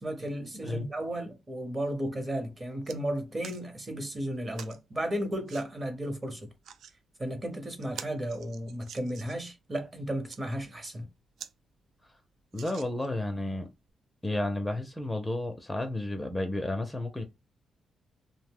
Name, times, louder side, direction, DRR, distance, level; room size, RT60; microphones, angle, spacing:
voice 1, 0.0-6.5 7.2-11.1, right 1 dB, 25° right, 0.8 m, -34 dB
sound 1, 2.7-3.0 3.4-3.6 4.5-4.8 5.5-5.7 6.4-6.9 7.4-7.5 7.8-9.5 10.1-10.4 11.0-11.1 11.4-11.5 11.9-12.0 12.5-13.2 13.9-14.0, right 8 dB, 80° right, 0.3 m, -46 dB
voice 2, 12.5-13.7 14.2-17.3, left 1 dB, 10° left, 0.5 m, -32 dB
2.7 x 2.0 x 3.5 m
cardioid pair, 95°, 0 cm